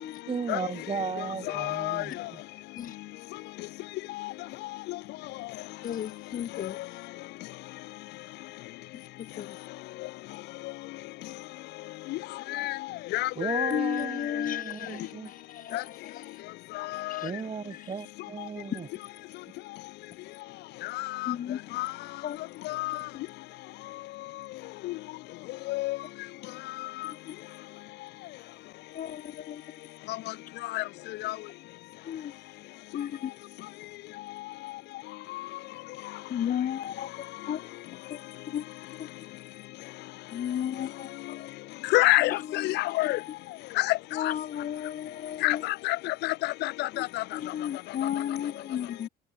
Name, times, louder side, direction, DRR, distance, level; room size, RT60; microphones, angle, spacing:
voice 1, 0.3-2.4 13.4-15.3 17.2-18.9, right 5 dB, 30° right, 5.9 m, -35 dB
voice 2, 1.5-2.0 12.5-12.8 13.1-13.7 14.4-14.6 15.7-15.8 16.8-17.3 21.0-21.3 21.8-21.9 22.6-23.0 24.8-24.9 25.7-26.0 30.7-30.8 31.2-31.3 41.9-43.2 43.8-44.0 45.4-47.2, left 19 dB, 85° left, 4.8 m, -27 dB
voice 3, 5.8-6.8 9.2-9.6 13.7-16.4 17.1-17.3 17.7-18.0 18.7-18.8 21.3-21.6 22.2-22.4 22.9-23.0 27.0-27.3 28.9-29.6 32.0-32.3 32.9-33.3 36.3-37.7 38.1-38.7 39.0-39.1 40.3-41.5 42.2-42.9 44.1-45.6 46.9-49.1, left 10 dB, 55° left, 7.0 m, -34 dB
cardioid pair, 110°, 17 cm